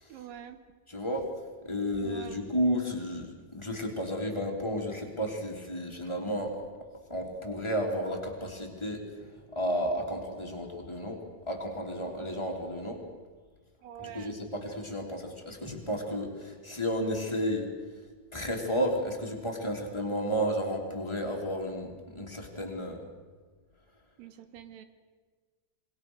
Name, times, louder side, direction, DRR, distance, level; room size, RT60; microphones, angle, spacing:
voice 1, 0.1-0.6 2.0-2.5 13.8-14.4 24.2-24.8, right 9 dB, 75° right, 9 dB, 2.7 m, -45 dB
voice 2, 0.9-1.3 1.6-6.6 7.1-9.0 9.5-13.0 14.0-17.7 18.3-23.1, equal, 10° left, 0 dB, 3.0 m, -32 dB
27.0 x 23.0 x 6.5 m, 1.4 s
omnidirectional pair, 4.4 m